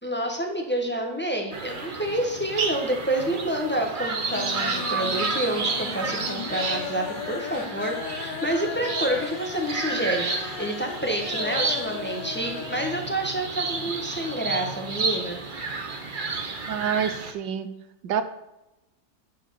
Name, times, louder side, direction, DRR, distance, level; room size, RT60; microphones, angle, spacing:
voice 1, 0.0-15.4, right 1 dB, 5° left, 1 dB, 1.1 m, -28 dB
sound 1, 1.5-17.3, right 4 dB, 40° right, 0.8 m, -31 dB
sound 2, 2.2-2.8 3.1-3.7 4.0-13.0 13.3-13.4 13.7-13.8, left 9 dB, 80° left, 1.3 m, -37 dB
voice 2, 16.7-17.7 18.0-18.2, right 8 dB, 85° right, 10 dB, 1.5 m, -27 dB
9.2 x 4.8 x 6.8 m, 0.95 s
omnidirectional pair, 1.9 m